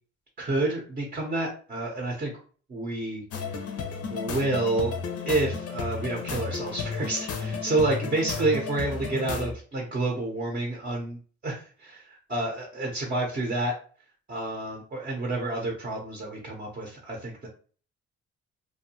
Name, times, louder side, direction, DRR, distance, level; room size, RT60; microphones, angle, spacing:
voice 1, 0.4-2.3 2.7-3.2 4.1-4.9 5.2-13.7 14.3-17.5, right 2 dB, 30° right, 0 dB, 0.7 m, -29 dB
sound 1, 3.3-9.5, left 5 dB, 55° left, 0.6 m, -33 dB
2.6 x 2.2 x 2.7 m, 0.42 s
cardioid pair, 90°, 30 cm